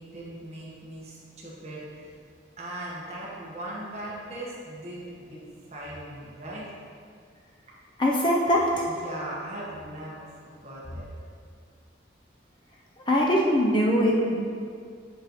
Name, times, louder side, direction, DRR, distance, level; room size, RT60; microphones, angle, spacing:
voice 1, 0.0-2.1 2.6-5.4 5.7-6.7 8.7-10.3 10.6-11.1, right 1 dB, 35° right, -6 dB, 1.4 m, -39 dB
voice 2, 8.0-8.9 13.1-14.3, equal, 25° left, -3 dB, 0.6 m, -22 dB
7.6 x 5.4 x 3.1 m, 2.2 s
head